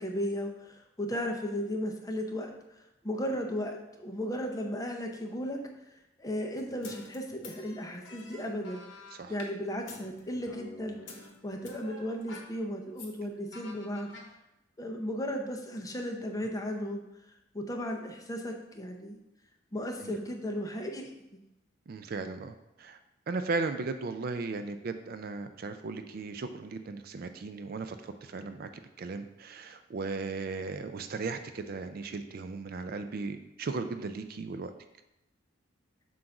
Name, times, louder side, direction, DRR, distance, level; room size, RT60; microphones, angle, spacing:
voice 1, 0.0-5.6 6.2-8.8 9.3-14.1 14.8-17.0 17.5-19.2 19.7-21.4, equal, 20° left, 2 dB, 0.7 m, -35 dB
sound 1, 6.5-9.5 9.9-12.5 12.9-13.1 13.5-14.3, left 2 dB, 70° left, 1.0 m, -48 dB
voice 2, 21.9-23.0 23.3-28.7 29.0-34.7, right 3 dB, 50° right, 9 dB, 0.4 m, -36 dB
7.6 x 2.6 x 5.8 m, 0.91 s
head